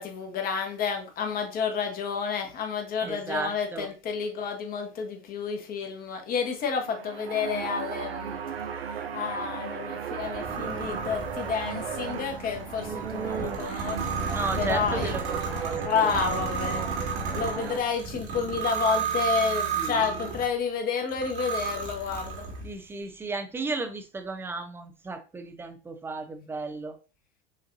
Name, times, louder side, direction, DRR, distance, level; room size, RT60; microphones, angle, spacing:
voice 1, 0.0-8.4 8.9-15.2 15.7-16.8 17.2-22.5, left 6 dB, 30° left, 1.0 m, -30 dB
voice 2, 3.0-3.9 12.8-13.6 14.3-16.2 19.8-20.0 22.6-27.0, right 3 dB, 10° right, 0.5 m, -34 dB
sound 1, 6.7-17.8, right 7 dB, 80° right, 0.6 m, -36 dB
sound 2, 10.2-20.5 21.1-22.7, right 5 dB, 60° right, 1.8 m, -33 dB
6.6 x 2.6 x 2.6 m
hypercardioid pair, 95°, 30 cm